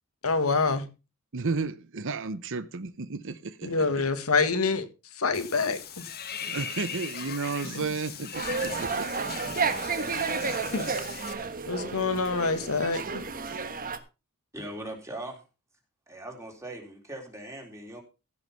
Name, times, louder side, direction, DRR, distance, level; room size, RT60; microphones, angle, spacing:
voice 1, 0.2-0.9 3.6-6.1 10.7-10.9 11.6-13.2, left 4 dB, 80° left, 1.7 m, -26 dB
voice 2, 1.3-3.7 6.5-9.4, right 4 dB, 60° right, 0.8 m, -33 dB
Water / Bathtub (filling or washing), 5.3-11.3, left 7 dB, 45° left, 1.7 m, -39 dB
sound 1, 8.3-14.0, right 4 dB, 40° right, 1.4 m, -31 dB
voice 3, 14.5-15.4 16.1-18.0, right 1 dB, 15° right, 3.8 m, -40 dB
15.5 x 6.4 x 5.7 m
head